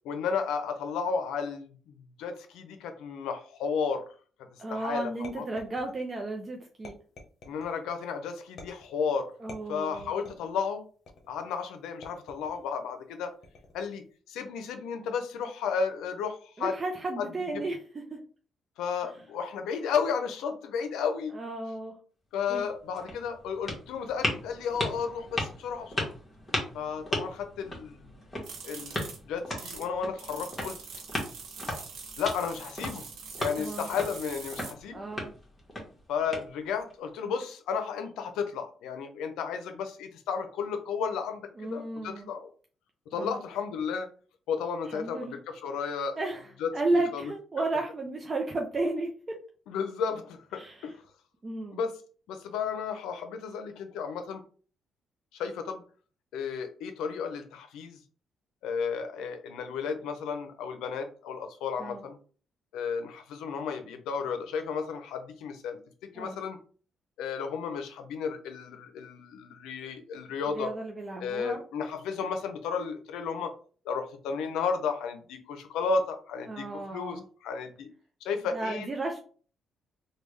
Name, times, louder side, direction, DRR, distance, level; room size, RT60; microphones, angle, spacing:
voice 1, 0.0-4.0 4.7-5.1 5.3-5.4 7.5-9.3 9.7-10.8 11.3-13.3 13.7-16.7 17.2-17.6 18.8-21.3 22.3-26.1 26.7-28.1 28.6-28.9 29.2-30.8 32.2-33.0 33.4-35.1 36.1-42.5 43.1-44.1 44.5-46.2 46.6-47.3 49.7-50.9 51.7-51.9 52.3-54.4 55.3-55.8 56.3-58.0 58.6-62.2 62.7-65.8 66.1-66.6 67.2-70.7 71.2-73.5 73.8-77.9 78.2-78.9, left 6 dB, 90° left, 7 dB, 0.5 m, -33 dB
voice 2, 4.6-6.9 9.4-10.3 16.6-18.2 21.3-21.9 22.5-22.7 33.6-33.9 34.9-35.3 41.6-42.3 43.1-43.4 44.9-45.3 46.2-49.4 50.5-50.9 51.4-51.8 61.8-62.0 66.1-66.4 70.5-71.6 76.5-77.2 78.5-79.2, right 2 dB, 35° right, 1 dB, 0.5 m, -33 dB
sound 1, 5.2-6.2 6.8-7.8 8.6-9.0 9.5-10.5 11.1-11.5 12.0-12.7 13.4-13.9, left 3 dB, 60° left, 0.8 m, -48 dB
sound 2, 22.4-36.9, left 1 dB, 20° left, 1.3 m, -37 dB
sound 3, 28.4-29.9 30.2-34.7, right 5 dB, 80° right, 0.8 m, -44 dB
3.4 x 2.3 x 3.1 m, 0.41 s
cardioid pair, 90°, 0 cm